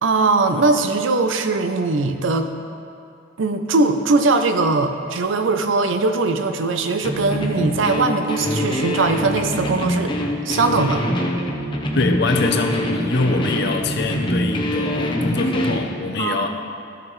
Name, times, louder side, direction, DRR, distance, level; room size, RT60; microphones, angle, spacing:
voice 1, 0.0-2.5 3.4-10.1 10.5-11.0 16.2-16.5, right 3 dB, 80° right, 7 dB, 0.6 m, -20 dB
sound 1, 7.0-15.9, equal, 25° left, 0.7 m, -24 dB
voice 2, 11.9-16.5, left 3 dB, 60° left, 5 dB, 0.7 m, -23 dB
14.0 x 5.9 x 3.2 m, 2.5 s
head